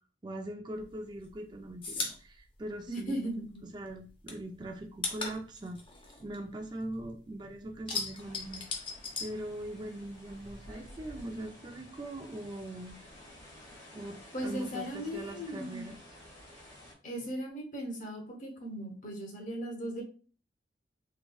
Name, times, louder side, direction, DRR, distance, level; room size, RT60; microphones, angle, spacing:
voice 1, 0.2-3.3 3.7-5.8 6.2-8.6 9.2-13.0 13.9-16.0, right 1 dB, 25° right, 3 dB, 0.4 m, -41 dB
sound 1, 0.8-3.6 3.9-7.2 7.5-10.1 10.3-11.4, left 4 dB, 30° left, 0.6 m, -39 dB
voice 2, 2.9-3.6 14.3-15.9 17.0-20.0, right 1 dB, 45° left, 1 dB, 1.0 m, -37 dB
sound 2, 8.2-16.9, left 1 dB, 80° left, 1.7 m, -52 dB
3.7 x 3.0 x 2.3 m, 0.39 s
head